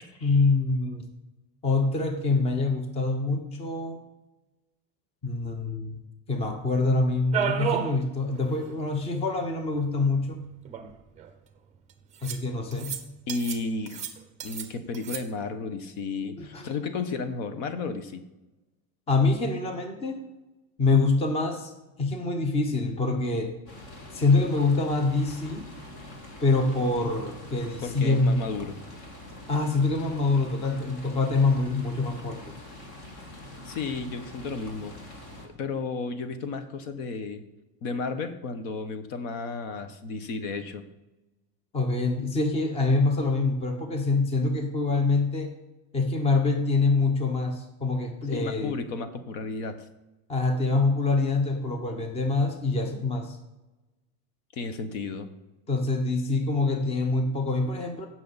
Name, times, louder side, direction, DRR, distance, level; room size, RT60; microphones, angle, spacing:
voice 1, 0.2-1.0 1.6-4.0 5.2-6.0 6.3-10.4 12.2-13.0 16.4-16.7 19.1-20.2 20.8-21.7 22.0-23.5 24.1-25.7 26.4-28.4 29.5-32.4 41.7-45.5 45.9-48.7 50.3-53.4 55.7-58.1, left 3 dB, 15° left, 5 dB, 0.8 m, -25 dB
sound 1, 7.3-8.0 8.3-8.4 8.7-8.8 9.8-9.9 10.7-11.3 12.2-12.4 12.7-13.0 13.3-13.6 13.9-14.7 14.9-15.2, right 8 dB, 15° right, 0.7 m, -31 dB
voice 2, 13.3-14.1 14.4-18.2 27.8-28.8 33.6-34.9 35.6-37.4 37.8-40.8 48.3-49.9 54.5-55.3, left 4 dB, 65° left, 9 dB, 1.3 m, -33 dB
sound 2, 23.7-35.5, left 1 dB, 45° left, 2.1 m, -44 dB
16.0 x 6.2 x 4.1 m, 1.0 s
cardioid pair, 180°, 44 cm